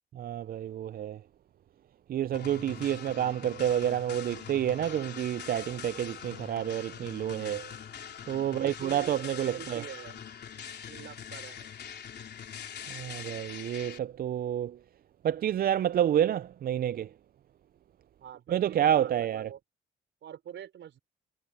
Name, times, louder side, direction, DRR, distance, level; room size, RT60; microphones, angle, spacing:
voice 1, 0.1-1.2 2.1-7.7 8.3-9.8 12.9-14.8 15.2-17.1 18.5-19.5, right 10 dB, 50° right, 0.4 m, -29 dB
sound 1, 2.3-14.0, left 8 dB, 55° left, 3.6 m, -43 dB
voice 2, 8.5-10.2 10.9-11.7 18.2-19.6 20.2-21.0, right 10 dB, 70° right, 5.3 m, -45 dB
cardioid pair, 90°, 20 cm